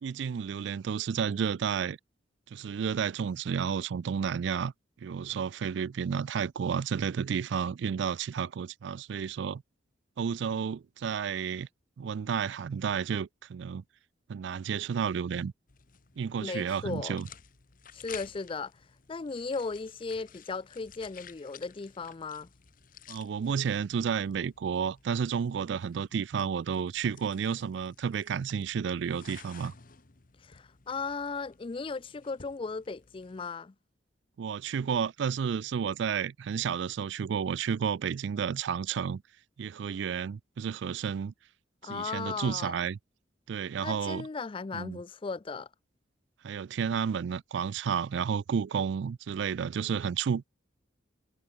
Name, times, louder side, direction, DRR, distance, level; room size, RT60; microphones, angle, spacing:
voice 1, 0.0-2.0 2.5-4.7 5.0-9.6 10.2-11.7 12.0-13.8 14.3-15.5 16.2-17.3 23.1-29.7 34.4-39.2 39.6-41.3 41.8-43.0 43.5-44.3 44.7-45.0 46.4-50.5, right 7 dB, 65° right, 0.3 m, -31 dB
sound 1, 15.7-33.5, left 8 dB, 45° left, 1.1 m, -54 dB
voice 2, 16.4-17.2 17.9-18.7 19.1-22.5 30.4-33.7 41.8-42.8 43.8-45.7, left 4 dB, 25° left, 0.4 m, -36 dB
head